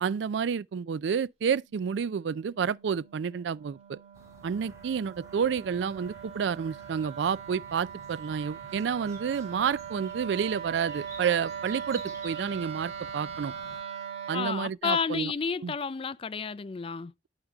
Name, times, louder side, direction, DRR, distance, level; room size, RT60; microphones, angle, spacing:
voice 1, 0.0-4.0 4.4-13.5 14.3-15.3 15.6-15.7, right 7 dB, 85° right, 0.4 m, -30 dB
Wind instrument woodwind instrument, 1.7-14.6, right 8 dB, 35° right, 1.6 m, -41 dB
sound 1, 4.1-13.8, right 2 dB, 20° right, 2.3 m, -52 dB
voice 2, 14.3-17.1, left 6 dB, 30° left, 0.4 m, -31 dB
10.5 x 5.1 x 3.4 m
head